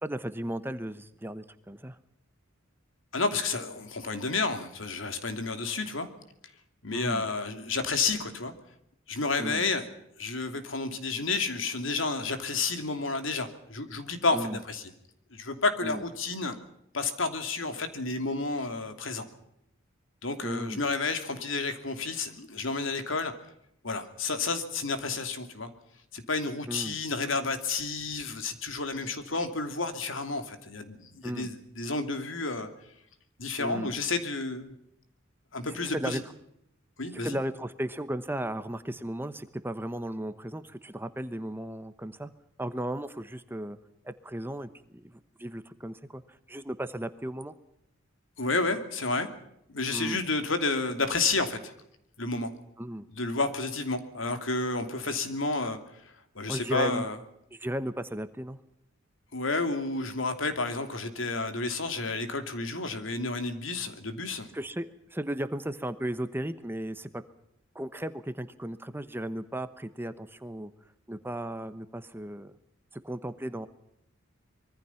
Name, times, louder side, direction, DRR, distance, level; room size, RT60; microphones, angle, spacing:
voice 1, 0.0-2.0 6.9-7.2 9.4-9.6 14.3-14.6 15.8-16.0 20.4-20.8 26.7-27.0 31.2-31.5 33.6-33.9 35.7-36.2 37.2-42.3 42.6-43.8 44.0-46.2 46.5-47.5 49.9-50.2 52.8-53.1 56.5-57.1 57.5-58.6 64.5-67.2 67.7-70.7 71.1-72.5 73.0-73.7, right 1 dB, 10° right, 11 dB, 1.0 m, -35 dB
voice 2, 3.1-6.1 6.8-8.5 9.1-9.8 10.2-14.9 15.3-16.6 16.9-19.2 20.2-23.3 23.8-25.7 26.1-32.7 33.4-34.7 35.5-36.2 37.0-37.4 48.4-49.3 49.7-51.7 52.2-52.5 53.1-57.2 59.3-64.5, left 3 dB, 75° left, 8 dB, 2.8 m, -31 dB
25.0 x 23.0 x 5.8 m, 0.77 s
head